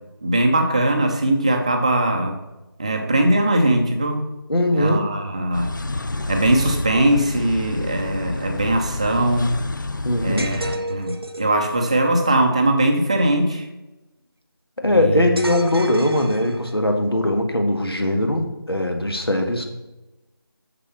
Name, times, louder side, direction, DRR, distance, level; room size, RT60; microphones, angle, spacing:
voice 1, 0.2-2.4 2.8-4.3 4.7-5.7 6.3-9.6 10.2-13.7 14.9-15.3, right 1 dB, 15° right, 4 dB, 0.6 m, -20 dB
voice 2, 4.5-5.0 10.0-10.7 14.8-19.6, left 1 dB, 85° left, 4 dB, 1.9 m, -20 dB
sound 1, 5.5-10.8, left 2 dB, 55° left, 0.8 m, -29 dB
sound 2, 10.4-11.6 15.4-16.9, right 1 dB, 90° right, 0.9 m, -32 dB
7.1 x 6.9 x 5.7 m, 1.0 s
figure-of-eight pair, 165°, 12 cm